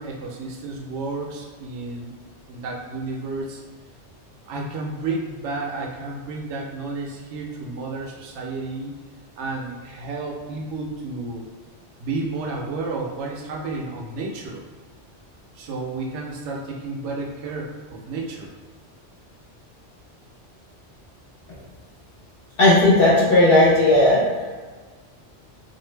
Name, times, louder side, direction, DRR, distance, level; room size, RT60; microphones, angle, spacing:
voice 1, 0.0-2.1 2.5-3.6 4.5-8.9 9.4-11.4 12.0-14.6 15.5-18.5, right 3 dB, 75° right, -1 dB, 0.9 m, -31 dB
voice 2, 22.6-24.2, left 1 dB, 55° left, -8 dB, 1.0 m, -15 dB
2.5 x 2.5 x 3.2 m, 1.4 s
omnidirectional pair, 1.2 m